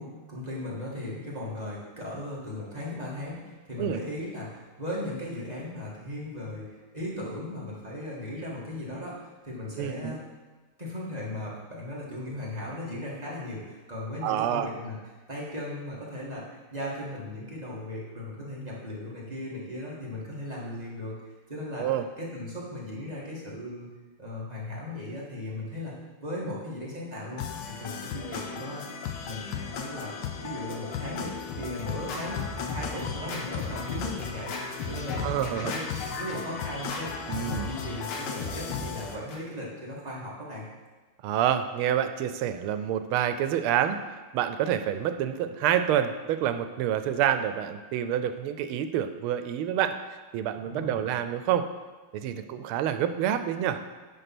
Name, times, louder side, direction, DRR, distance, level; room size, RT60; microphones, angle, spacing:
voice 1, 0.0-10.2 10.8-15.0 15.3-21.2 21.5-21.9 22.2-23.9 24.2-25.9 26.2-27.5 27.8-30.1 30.4-35.9 36.2-40.6 50.7-51.1, left 1 dB, 20° right, -6 dB, 1.8 m, -37 dB
voice 2, 9.8-10.2 14.2-14.7 21.8-22.0 28.2-28.3 35.2-35.7 37.3-37.7 41.2-44.0 44.3-49.9 50.3-51.7 52.1-53.8, right 10 dB, 90° right, 10 dB, 1.5 m, -27 dB
sound 1, 27.4-39.2, left 7 dB, 70° left, 1.3 m, -37 dB
Scratching (performance technique), 30.9-39.4, left 3 dB, 85° left, 2.0 m, -37 dB
10.0 x 4.1 x 6.0 m, 1.3 s
omnidirectional pair, 2.3 m